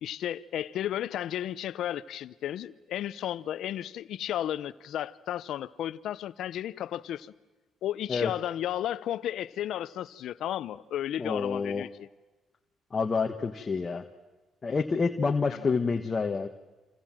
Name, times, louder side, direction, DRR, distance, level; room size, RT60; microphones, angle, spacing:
voice 1, 0.0-7.3 7.8-12.1 15.5-15.7, left 11 dB, 75° left, 0.8 m, -33 dB
voice 2, 11.2-11.8 12.9-14.0 14.6-16.5, left 4 dB, 35° left, 1.4 m, -28 dB
27.5 x 27.5 x 7.6 m
cardioid pair, 90°, 0 cm